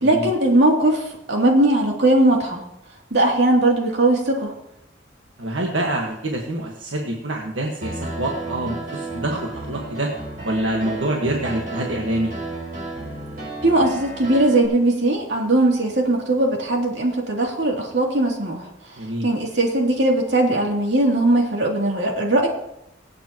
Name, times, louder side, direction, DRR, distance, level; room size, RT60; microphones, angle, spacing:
voice 1, 0.0-2.6 3.1-4.5 13.6-22.5, right 1 dB, 65° right, -1 dB, 2.9 m, -19 dB
voice 2, 5.4-10.1 10.4-12.3 19.0-19.3, right 1 dB, 85° right, 0 dB, 1.5 m, -26 dB
Piano, 7.8-14.7, right 2 dB, 45° right, 5.1 m, -33 dB
25.0 x 8.5 x 3.0 m, 0.85 s
head